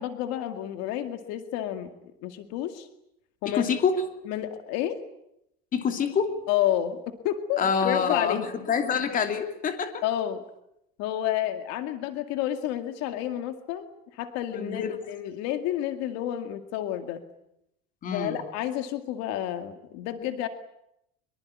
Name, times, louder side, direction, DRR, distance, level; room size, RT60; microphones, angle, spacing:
voice 1, 0.0-2.9 3.4-3.6 4.3-5.0 6.5-8.5 10.0-10.4 11.0-13.9 14.1-17.2 18.1-20.5, left 12 dB, 60° left, 8 dB, 2.1 m, -30 dB
voice 2, 3.4-3.9 5.7-6.4 7.6-8.4 8.7-10.0 14.5-15.0 18.0-18.4, left 6 dB, 30° left, 6 dB, 2.9 m, -26 dB
24.0 x 23.0 x 9.6 m, 0.81 s
cardioid pair, 160°, 30 cm